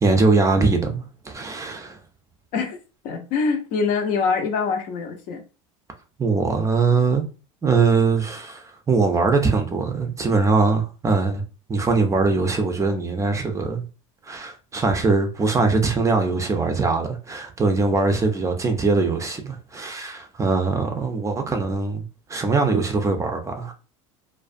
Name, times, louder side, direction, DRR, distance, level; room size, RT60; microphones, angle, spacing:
voice 1, 0.0-2.0 6.2-7.2 7.6-11.4 11.7-13.8 14.2-23.7, right 4 dB, 20° right, 0.4 m, -22 dB
voice 2, 3.0-5.4, left 5 dB, 55° left, 0.7 m, -24 dB
2.3 x 2.2 x 2.5 m
supercardioid pair, 105°, 17 cm